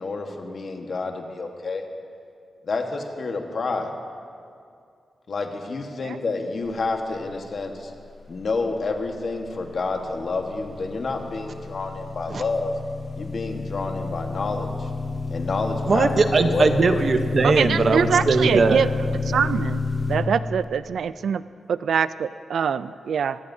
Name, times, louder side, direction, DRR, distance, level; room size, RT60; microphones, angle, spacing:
voice 1, 0.0-1.8 2.7-3.9 5.3-7.9 8.3-12.7 13.2-14.9 15.3-16.1 16.4-16.7, left 3 dB, 45° left, 3 dB, 1.3 m, -29 dB
sound 1, 9.3-20.2, left 3 dB, 20° left, 3.0 m, -30 dB
voice 2, 15.9-18.8, right 4 dB, 40° right, 7 dB, 0.8 m, -20 dB
voice 3, 17.4-18.9 19.3-19.8 20.1-21.4 21.7-23.4, right 7 dB, 70° right, 15 dB, 0.3 m, -24 dB
24.5 x 18.0 x 2.7 m, 2.3 s
wide cardioid pair, 170°, 0 cm